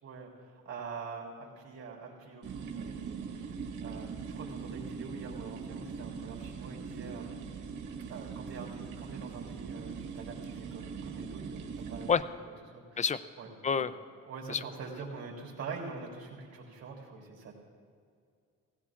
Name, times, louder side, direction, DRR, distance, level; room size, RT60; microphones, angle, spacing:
voice 1, 0.0-3.5 3.8-7.4 8.1-12.4 12.7-13.5 13.8-13.9 14.2-17.5, right 4 dB, 55° right, -2 dB, 3.5 m, -45 dB
sound 1, 2.4-12.1, right 6 dB, 75° right, 1.7 m, -41 dB
voice 2, 12.1-12.2 13.0-13.2 13.6-13.9 14.5-14.6, left 6 dB, 25° left, 14 dB, 0.5 m, -27 dB
17.5 x 16.5 x 2.5 m, 2.2 s
cardioid pair, 90°, 30 cm